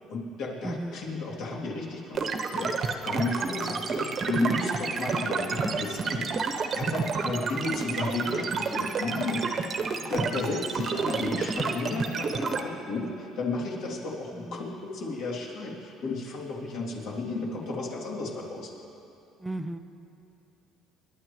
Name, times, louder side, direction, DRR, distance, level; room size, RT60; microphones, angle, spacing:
voice 1, 0.1-9.5 9.9-18.7, left 2 dB, 65° left, -3 dB, 2.9 m, -33 dB
voice 2, 0.6-1.0 1.3-1.4 3.4-3.6 19.4-19.8, right 1 dB, 5° right, 6 dB, 0.5 m, -35 dB
sound 1, 2.1-12.6, right 4 dB, 40° right, 1.0 m, -29 dB
27.0 x 11.5 x 3.2 m, 2.8 s
cardioid pair, 135°, 0 cm